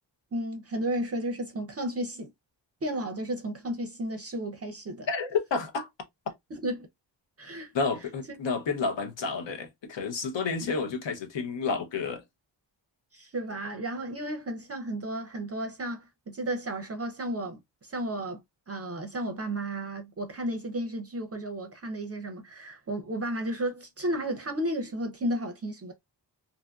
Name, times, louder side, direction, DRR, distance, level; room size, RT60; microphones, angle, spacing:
voice 1, 0.3-2.3 2.8-5.1 6.5-6.9 7.4-7.7 13.1-25.9, right 1 dB, 35° right, 0.5 m, -33 dB
voice 2, 5.1-5.9 7.7-12.2, left 4 dB, 85° left, 0.8 m, -30 dB
2.6 x 2.5 x 2.2 m
wide cardioid pair, 135°, 44 cm